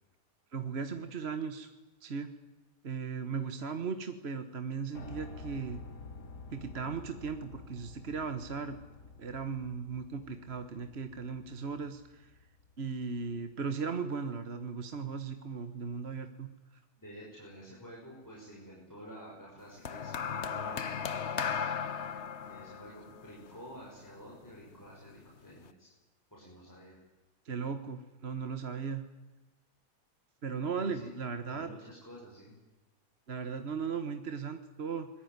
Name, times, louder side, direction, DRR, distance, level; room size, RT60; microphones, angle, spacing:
voice 1, 0.5-1.7 2.0-2.3 2.8-5.8 6.5-8.8 9.2-12.4 12.8-16.5 27.4-29.0 30.4-31.7 33.3-35.1, right 5 dB, 40° right, 8 dB, 1.5 m, -37 dB
Piano, 4.9-13.0, left 3 dB, 75° left, 2.9 m, -50 dB
voice 2, 17.0-21.5 22.4-25.9 26.3-27.0 30.6-31.1 31.5-32.6, equal, 10° left, -3 dB, 6.2 m, -50 dB
sound 1, 19.9-24.3 25.2-25.5, left 7 dB, 45° left, 1.2 m, -36 dB
25.5 x 21.5 x 9.7 m, 1.1 s
omnidirectional pair, 1.8 m